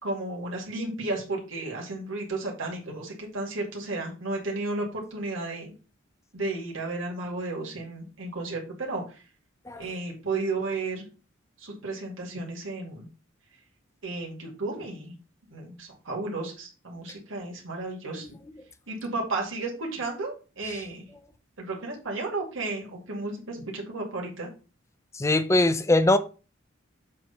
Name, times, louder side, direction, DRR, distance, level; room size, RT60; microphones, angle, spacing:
voice 1, 0.0-5.7 6.3-9.2 9.8-11.1 11.6-13.1 14.0-15.2 15.5-18.3 18.9-21.0 21.6-24.5, right 2 dB, 75° right, 2.2 m, -33 dB
voice 2, 25.1-26.2, left 2 dB, 15° left, 0.5 m, -21 dB
7.7 x 3.1 x 5.7 m
head